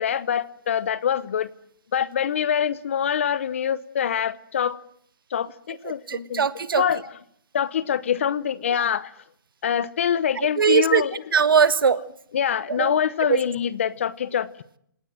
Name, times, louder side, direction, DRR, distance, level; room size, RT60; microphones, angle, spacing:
voice 1, 0.0-1.5 1.9-4.8 5.3-6.4 6.8-7.0 7.5-9.1 9.6-11.1 12.3-14.5, left 8 dB, 35° left, 18 dB, 0.9 m, -25 dB
voice 2, 5.8-6.8 8.7-8.9 10.3-11.0 11.3-12.0 12.7-13.0 13.3-13.4, right 6 dB, 85° right, 14 dB, 1.7 m, -21 dB
27.5 x 18.0 x 7.7 m, 0.68 s
hypercardioid pair, 180°, 11 cm